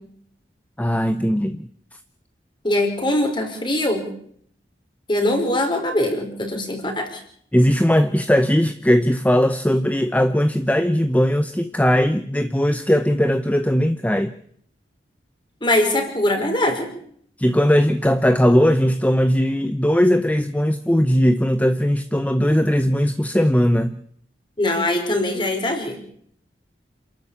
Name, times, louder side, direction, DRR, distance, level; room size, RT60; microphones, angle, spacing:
voice 1, 0.8-1.6 7.5-14.3 17.4-24.0, equal, 10° left, 11 dB, 0.8 m, -19 dB
voice 2, 2.6-4.1 5.1-7.2 15.6-16.9 24.6-26.0, left 1 dB, 30° left, 4 dB, 5.1 m, -22 dB
28.0 x 13.0 x 8.7 m, 0.65 s
head